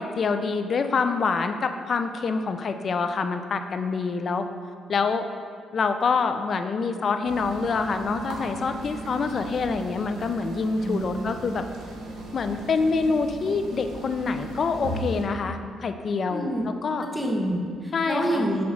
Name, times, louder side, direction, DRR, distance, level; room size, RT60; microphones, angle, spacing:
voice 1, 0.0-4.5 4.9-5.3 5.7-11.6 12.3-16.5 16.8-17.1 17.9-18.4, left 4 dB, 50° left, 8 dB, 0.4 m, -26 dB
sound 1, 7.3-15.2, right 2 dB, 85° right, 1.0 m, -36 dB
voice 2, 10.8-11.3 16.3-16.6 17.0-18.6, equal, ahead, -1 dB, 1.1 m, -27 dB
7.1 x 3.0 x 6.0 m, 2.2 s
cardioid pair, 90°, 0 cm